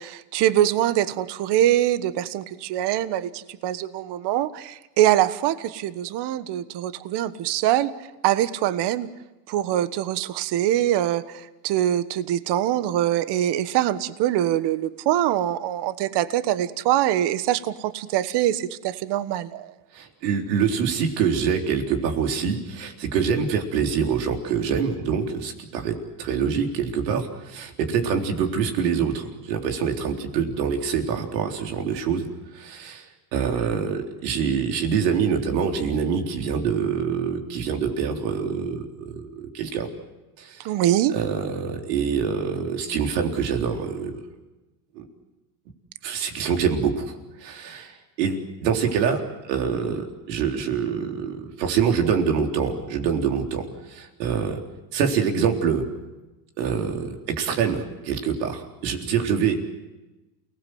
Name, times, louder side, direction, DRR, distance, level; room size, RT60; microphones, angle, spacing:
voice 1, 0.0-7.9 8.2-9.1 9.5-19.7 40.6-41.1, right 12 dB, 55° right, 13 dB, 1.4 m, -23 dB
voice 2, 19.9-32.3 32.5-33.1 33.3-39.9 40.4-40.7 41.1-44.2 45.0-45.1 46.0-47.1 47.4-54.6 54.9-55.9 56.6-59.7, right 6 dB, 85° right, 3 dB, 4.0 m, -25 dB
29.0 x 19.0 x 7.9 m, 1.1 s
supercardioid pair, 100°, 48 cm